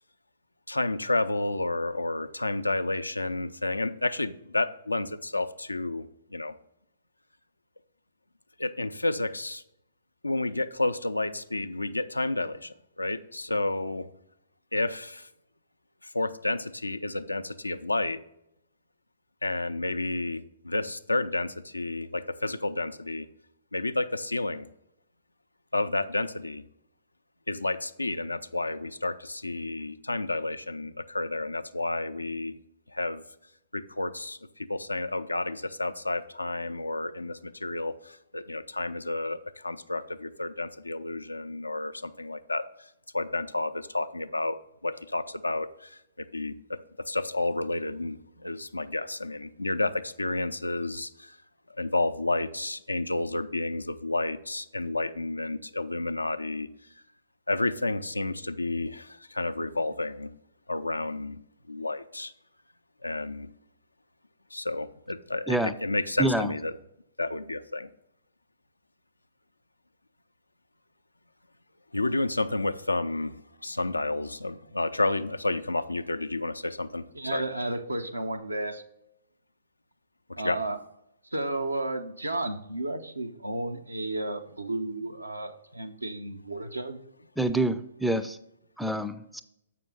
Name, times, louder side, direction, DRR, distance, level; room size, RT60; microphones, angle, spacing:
voice 1, 0.7-6.6 8.6-9.6 10.2-14.1 14.7-15.3 16.0-18.2 19.4-23.3 23.7-24.7 25.7-26.6 27.5-32.5 32.9-33.2 33.7-42.9 43.1-44.6 44.8-46.8 47.1-51.4 51.8-56.7 57.5-60.3 60.7-61.4 61.7-62.3 63.0-63.5 64.5-66.7 67.2-67.9 71.9-77.0 77.3-77.4 80.4-80.6, left 2 dB, 90° left, 11 dB, 0.4 m, -31 dB
voice 2, 66.2-66.5 87.4-88.4 88.8-89.4, right 1 dB, ahead, 11 dB, 0.4 m, -27 dB
voice 3, 77.1-78.8 80.4-80.8 81.3-87.0, right 2 dB, 90° right, 6 dB, 0.7 m, -33 dB
7.4 x 5.8 x 3.8 m, 0.80 s
figure-of-eight pair, 120°, 0 cm